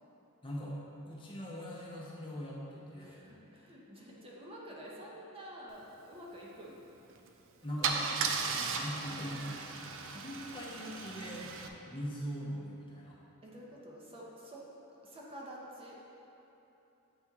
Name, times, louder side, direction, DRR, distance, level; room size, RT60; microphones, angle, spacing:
voice 1, 0.4-0.8 1.1-3.2 7.6-9.6 10.0-11.5 11.9-13.2, equal, 25° left, -5 dB, 0.8 m, -41 dB
voice 2, 3.0-6.8 9.1-9.3 13.4-14.6 15.0-16.0, equal, 25° right, -4 dB, 0.8 m, -49 dB
Car / Engine starting / Idling, 7.1-7.3 7.8-11.7, right 5 dB, 60° right, 0.4 m, -36 dB
7.9 x 4.3 x 3.6 m, 3.0 s
head